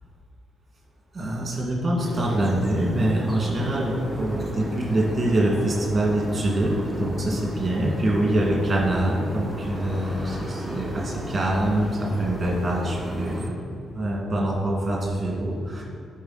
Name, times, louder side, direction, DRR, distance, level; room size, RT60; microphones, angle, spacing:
voice 1, 1.1-13.5 13.9-15.8, right 1 dB, 30° right, -3 dB, 1.8 m, -25 dB
sound 1, 2.0-13.5, equal, 15° left, 1.6 m, -34 dB
9.5 x 4.5 x 4.0 m, 2.6 s
cardioid pair, 80°, 0 cm